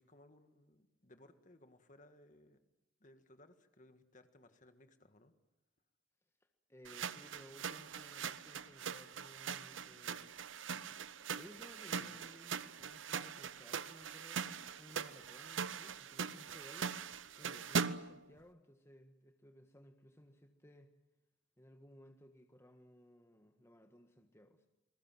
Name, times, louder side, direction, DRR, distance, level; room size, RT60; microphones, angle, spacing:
voice 1, 0.0-2.6 3.0-5.3 12.0-12.3, left 1 dB, 40° left, 8 dB, 1.7 m, -63 dB
voice 2, 6.7-10.3 10.7-16.9 17.4-20.9 21.6-24.7, equal, 15° left, 5 dB, 1.4 m, -59 dB
sound 1, 6.8-18.2, right 6 dB, 85° right, 0.8 m, -41 dB
28.5 x 20.5 x 7.6 m, 1.0 s
head